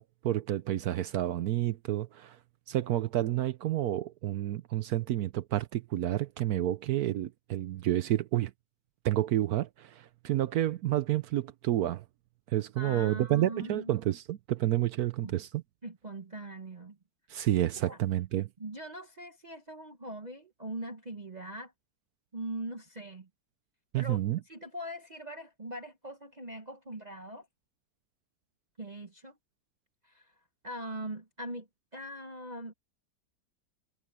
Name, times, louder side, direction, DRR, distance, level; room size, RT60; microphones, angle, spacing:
voice 1, 0.0-2.4 2.7-8.5 9.0-12.0 12.5-15.5 17.3-18.5 23.9-24.4, right 13 dB, 70° right, 1.0 m, -30 dB
voice 2, 12.8-13.9 15.2-15.3 15.8-17.0 17.8-18.0 18.6-21.7 22.3-23.3 24.0-24.2 24.4-27.5 28.8-29.4 30.0-30.3 30.6-32.7, right 1 dB, 30° right, 1.0 m, -41 dB
omnidirectional pair, 1.9 m